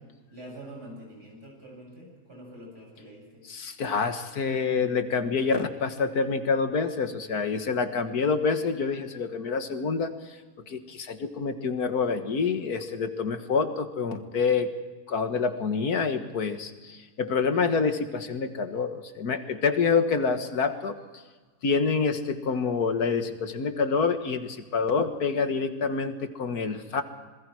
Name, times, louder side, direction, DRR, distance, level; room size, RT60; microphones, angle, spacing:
voice 1, 0.3-3.4, right 1 dB, 80° right, -1 dB, 8.8 m, -45 dB
voice 2, 3.5-10.1 10.7-14.7 15.1-21.0 21.6-27.0, left 5 dB, 70° left, 8 dB, 2.0 m, -27 dB
26.5 x 21.0 x 4.8 m, 1.4 s
omnidirectional pair, 1.7 m